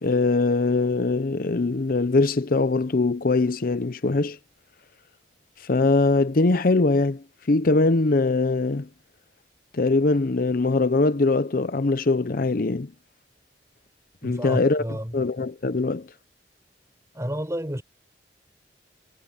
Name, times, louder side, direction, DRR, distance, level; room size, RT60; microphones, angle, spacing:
voice 1, 0.0-4.4 5.6-8.9 9.7-12.9 14.2-14.8 15.1-16.1, left 3 dB, 55° left, 0.7 m, -22 dB
voice 2, 14.2-15.2 17.1-17.8, equal, 15° right, 5.8 m, -31 dB
head